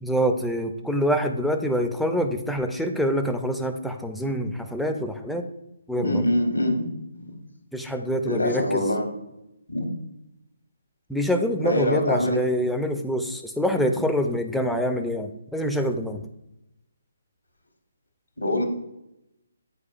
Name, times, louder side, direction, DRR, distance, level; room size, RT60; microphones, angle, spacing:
voice 1, 0.0-5.4 5.9-6.2 7.7-8.8 11.1-16.2, equal, ahead, 4 dB, 0.4 m, -25 dB
voice 2, 6.0-6.9 7.2-7.3 8.3-9.0 9.7-9.9 11.6-12.4 13.8-13.9 18.4-18.6, left 1 dB, 80° left, 2 dB, 1.3 m, -24 dB
8.4 x 4.6 x 2.4 m, 0.87 s
figure-of-eight pair, 140°, 0 cm